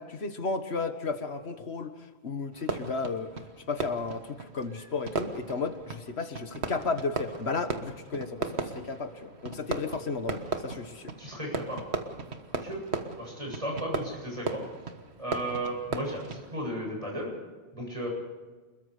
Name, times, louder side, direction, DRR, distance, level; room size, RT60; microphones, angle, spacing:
voice 1, 0.0-1.9 2.2-3.3 3.7-11.1, left 4 dB, 85° left, 8 dB, 1.8 m, -33 dB
Fireworks, 2.5-16.8, right 4 dB, 85° right, 1.7 m, -37 dB
voice 2, 11.2-11.9 12.6-12.9 13.2-14.6 15.2-17.3 17.7-18.1, right 1 dB, 30° right, -1 dB, 8.2 m, -34 dB
28.5 x 21.5 x 5.0 m, 1.3 s
omnidirectional pair, 1.1 m